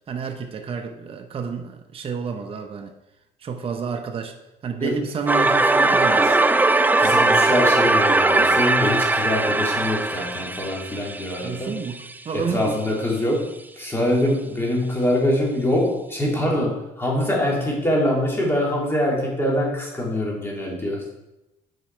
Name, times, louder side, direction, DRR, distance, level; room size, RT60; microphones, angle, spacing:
voice 1, 0.1-2.9 3.4-4.4 4.6-6.4 8.0-8.1 11.4-12.7, right 5 dB, 35° right, 5 dB, 0.7 m, -30 dB
sound 1, 5.3-12.1, right 2 dB, 10° right, 0.4 m, -19 dB
voice 2, 7.0-11.7 12.3-13.4 13.8-21.1, left 1 dB, 15° left, -3 dB, 2.6 m, -24 dB
9.2 x 4.8 x 4.4 m, 0.94 s
cardioid pair, 110°, 17 cm